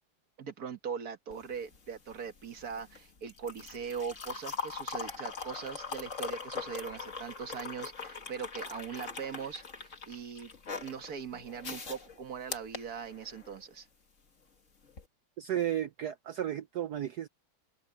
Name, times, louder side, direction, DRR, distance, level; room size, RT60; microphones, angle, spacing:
voice 1, 0.4-10.5 10.8-13.9, right 6 dB, 45° right, 1.7 m, -40 dB
sound 1, 1.3-13.6 14.9-15.0, left 5 dB, 35° left, 2.1 m, -42 dB
voice 2, 15.4-17.3, right 11 dB, 80° right, 0.9 m, -33 dB
open air
omnidirectional pair, 2.4 m